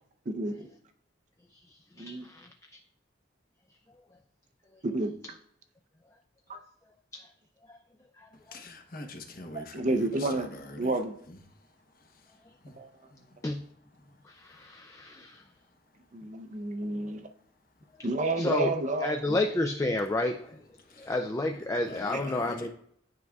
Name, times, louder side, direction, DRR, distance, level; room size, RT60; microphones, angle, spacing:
voice 1, 0.3-0.7 2.0-2.3 4.8-5.1 6.5-6.6 9.7-11.2 12.8-12.9 16.1-17.3 18.0-19.4, right 2 dB, 40° right, 0.5 m, -30 dB
voice 2, 1.7-2.8 7.7-7.8 8.2-8.3 13.4-13.6 14.3-15.4 18.4-18.7 19.0-20.6 21.0-22.7, left 2 dB, 15° left, 0.3 m, -31 dB
voice 3, 8.5-9.8 10.3-10.5 12.6-12.7 21.9-22.7, left 2 dB, 50° left, 0.9 m, -42 dB
9.4 x 4.6 x 2.3 m
head